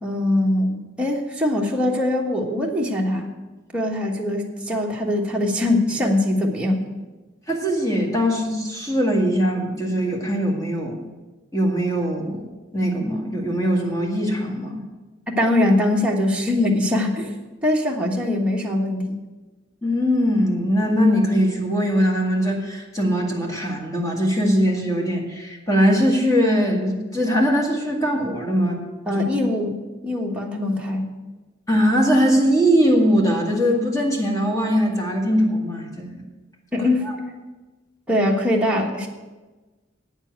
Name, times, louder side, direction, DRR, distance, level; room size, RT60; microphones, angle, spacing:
voice 1, 0.0-3.3 3.7-6.8 15.3-17.3 17.6-19.2 29.1-31.1 36.7-37.1 38.1-39.1, left 1 dB, 5° right, -2 dB, 1.3 m, -22 dB
voice 2, 7.5-11.0 11.5-12.5 12.7-14.8 19.8-28.8 29.1-29.2 31.7-36.2, equal, 15° left, -1 dB, 1.9 m, -21 dB
9.1 x 7.3 x 8.0 m, 1.2 s
head